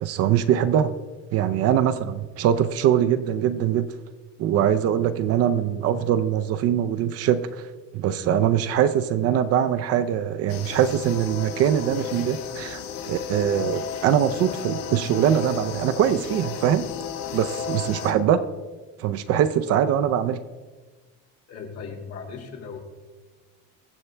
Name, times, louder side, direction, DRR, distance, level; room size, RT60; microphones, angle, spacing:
voice 1, 0.0-0.9 1.3-3.9 4.4-16.9 17.3-18.4 19.0-20.4, right 9 dB, 45° right, 11 dB, 0.5 m, -22 dB
sound 1, 10.5-18.1, left 7 dB, 70° left, 1.6 m, -33 dB
voice 2, 21.5-22.8, left 5 dB, 45° left, 1 dB, 2.3 m, -37 dB
23.5 x 7.9 x 3.3 m, 1.4 s
cardioid pair, 170°, 34 cm